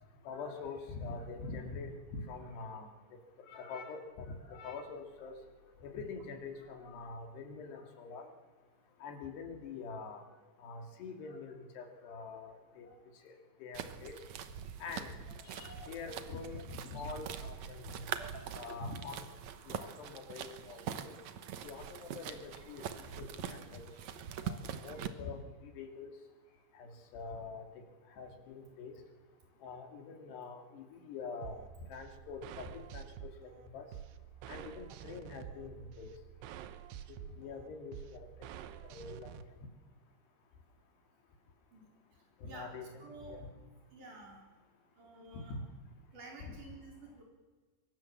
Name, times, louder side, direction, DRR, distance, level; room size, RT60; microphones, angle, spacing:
voice 1, 0.2-2.9 3.5-5.3 5.6-8.3 9.0-10.2 10.6-12.9 13.2-13.3 13.6-14.2 14.8-19.3 19.7-21.2 21.6-23.8 24.4-26.2 26.7-27.6 28.2-28.9 29.6-33.1 33.4-33.9 34.5-36.1 37.1-38.3 38.6-39.4 42.4-43.5 45.3-45.7 46.4-46.6, left 4 dB, 85° left, 4 dB, 4.7 m, -45 dB
sound 1, 13.7-25.1, right 9 dB, 70° right, 1.7 m, -43 dB
voice 2, 17.9-18.5 41.7-41.8 42.4-42.8 43.0-43.4 43.9-44.4 45.0-45.5 46.1-47.2, right 3 dB, 50° right, 0 dB, 5.6 m, -51 dB
sound 2, 31.4-39.4, right 10 dB, 90° right, 3.1 m, -49 dB
24.0 x 24.0 x 7.5 m, 1.3 s
omnidirectional pair, 4.7 m